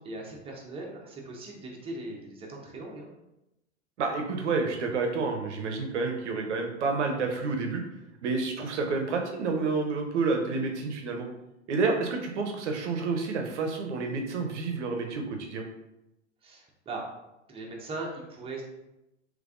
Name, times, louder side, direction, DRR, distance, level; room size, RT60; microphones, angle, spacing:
voice 1, 0.0-3.1 16.4-17.0 17.5-18.6, right 2 dB, 15° right, -1 dB, 0.7 m, -39 dB
voice 2, 4.0-7.8 8.2-11.3 11.7-15.6, right 4 dB, 70° right, 3 dB, 0.7 m, -29 dB
3.3 x 3.2 x 2.4 m, 0.90 s
hypercardioid pair, 95°, 36 cm